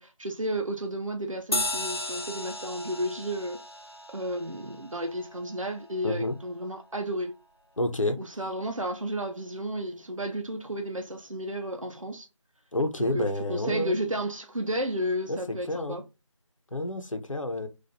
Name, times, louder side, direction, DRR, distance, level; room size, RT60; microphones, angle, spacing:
voice 1, 0.0-3.6 4.1-7.3 8.2-12.3 13.0-16.0, right 1 dB, 80° right, 0.7 m, -32 dB
sound 1, 1.5-6.4, left 2 dB, 50° left, 0.5 m, -36 dB
voice 2, 6.0-6.4 7.8-8.2 12.7-14.0 15.3-16.0 16.7-17.7, left 1 dB, 80° left, 0.9 m, -29 dB
4.1 x 2.6 x 2.8 m
figure-of-eight pair, 170°, 17 cm